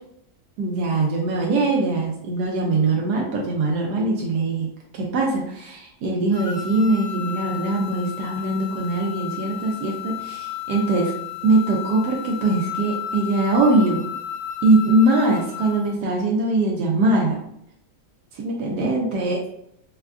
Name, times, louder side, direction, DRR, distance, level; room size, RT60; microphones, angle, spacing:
voice 1, 0.6-4.7 4.9-11.1 11.4-14.0 14.6-17.4 18.3-19.4, right 2 dB, 75° right, -1 dB, 1.1 m, -21 dB
sound 1, 6.3-15.9, left 11 dB, 65° left, 1.2 m, -33 dB
4.2 x 2.3 x 2.4 m, 0.74 s
omnidirectional pair, 1.8 m